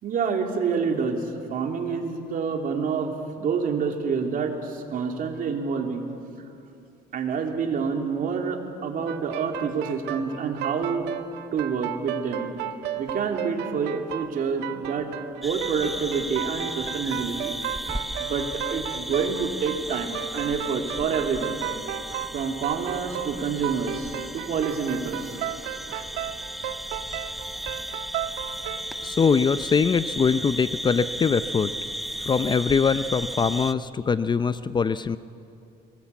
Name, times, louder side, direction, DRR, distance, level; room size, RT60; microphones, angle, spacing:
voice 1, 0.0-6.1 7.1-11.1 11.5-12.5 13.0-17.5 18.2-21.5 22.3-25.4 25.9-26.1, right 5 dB, 55° right, 3 dB, 3.1 m, -28 dB
sound 1, 9.1-28.9, right 11 dB, 90° right, 1.3 m, -34 dB
sound 2, 15.4-33.7, equal, ahead, 0.8 m, -35 dB
voice 2, 29.0-31.7 32.2-35.2, left 5 dB, 25° left, 14 dB, 0.5 m, -22 dB
23.0 x 20.0 x 8.3 m, 2.6 s
cardioid pair, 110°, 17 cm